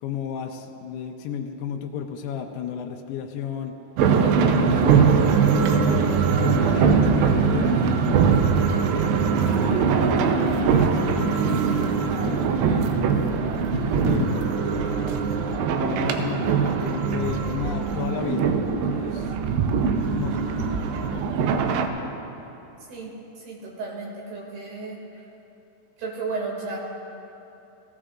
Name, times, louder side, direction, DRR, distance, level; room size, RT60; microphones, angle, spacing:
voice 1, 0.0-3.8 4.4-8.4 9.1-12.8 13.6-15.3 15.7-19.3 20.1-20.7, left 7 dB, 80° left, 1 dB, 2.6 m, -33 dB
sound 1, 4.0-21.9, right 6 dB, 90° right, 2.8 m, -21 dB
voice 2, 23.5-25.0 26.0-26.8, right 4 dB, 70° right, -3 dB, 4.3 m, -33 dB
20.5 x 16.0 x 2.5 m, 2.9 s
omnidirectional pair, 4.8 m